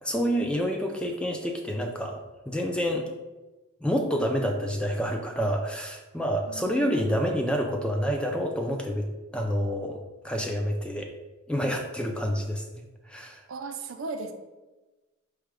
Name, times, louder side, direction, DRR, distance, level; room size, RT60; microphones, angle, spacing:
voice 1, 0.0-3.1 3.8-10.0 10.2-11.1 11.5-13.4, equal, 5° left, 2 dB, 0.3 m, -28 dB
voice 2, 6.5-7.0 13.5-14.3, right 3 dB, 75° right, 6 dB, 0.5 m, -36 dB
4.7 x 2.2 x 4.7 m, 1.1 s
head